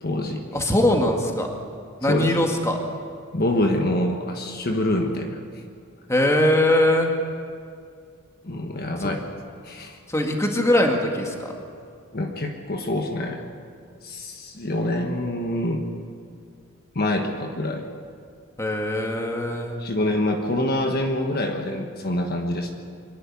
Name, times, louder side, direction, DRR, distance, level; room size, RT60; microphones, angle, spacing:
voice 1, 0.0-0.4 2.1-2.3 3.3-5.4 8.4-9.2 9.6-10.0 12.1-13.4 14.0-15.9 16.9-17.8 19.8-22.7, left 1 dB, 45° left, 3 dB, 1.4 m, -25 dB
voice 2, 0.5-1.5 2.0-2.8 6.1-7.1 9.0-9.1 10.1-11.5 18.6-19.8, left 1 dB, 15° left, 2 dB, 1.9 m, -21 dB
24.0 x 11.0 x 9.8 m, 2.2 s
head